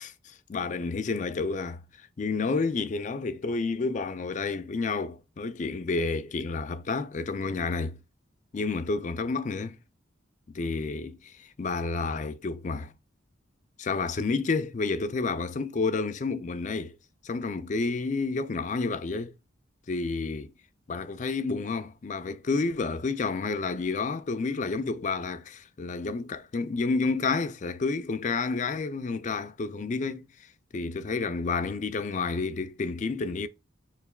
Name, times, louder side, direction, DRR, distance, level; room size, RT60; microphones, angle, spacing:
voice 1, 0.0-1.8 2.2-8.0 8.5-9.8 10.5-12.9 13.8-17.0 17.2-19.3 19.9-20.5 20.9-30.3 30.7-33.5, left 4 dB, 35° left, 0.3 m, -30 dB
6.8 x 3.3 x 2.2 m
head